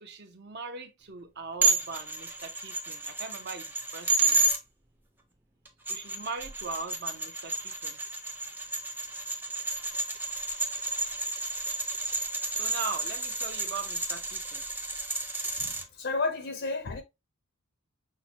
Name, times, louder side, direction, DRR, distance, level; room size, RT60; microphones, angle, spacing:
voice 1, 0.0-4.5 5.9-8.0 12.5-14.6, right 4 dB, 50° right, 0.7 m, -40 dB
sound 1, 1.6-4.6 5.7-15.8, right 3 dB, 10° right, 0.5 m, -31 dB
voice 2, 15.6-17.0, left 3 dB, 50° left, 0.5 m, -32 dB
5.6 x 2.2 x 2.8 m
head